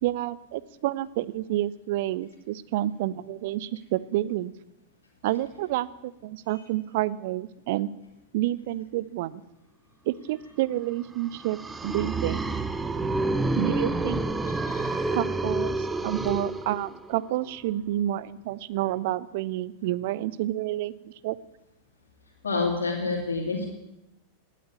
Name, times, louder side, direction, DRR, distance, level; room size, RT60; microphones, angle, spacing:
voice 1, 0.0-4.5 5.2-7.9 8.3-9.4 10.1-12.4 13.5-14.2 15.1-21.4, right 14 dB, 50° right, 18 dB, 0.6 m, -29 dB
sound 1, 11.3-17.2, right 2 dB, 10° right, 1.0 m, -28 dB
voice 2, 14.4-15.2 22.4-23.7, left 3 dB, 70° left, -4 dB, 2.9 m, -29 dB
18.0 x 8.5 x 9.4 m, 0.91 s
figure-of-eight pair, 90°, 0 cm